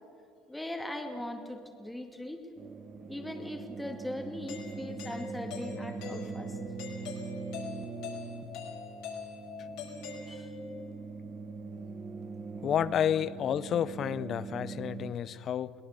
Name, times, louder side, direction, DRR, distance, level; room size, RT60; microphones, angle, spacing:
voice 1, 0.5-2.4 3.1-6.6 10.3-10.5, left 1 dB, 5° left, 4 dB, 2.2 m, -39 dB
sound 1, 2.6-15.1, right 4 dB, 35° right, 1.4 m, -42 dB
Doorbell, 4.5-10.8, left 5 dB, 75° left, 5.2 m, -43 dB
voice 2, 12.6-15.7, left 9 dB, 45° left, 18 dB, 0.6 m, -30 dB
22.5 x 18.0 x 6.7 m, 2.7 s
supercardioid pair, 100°, 0 cm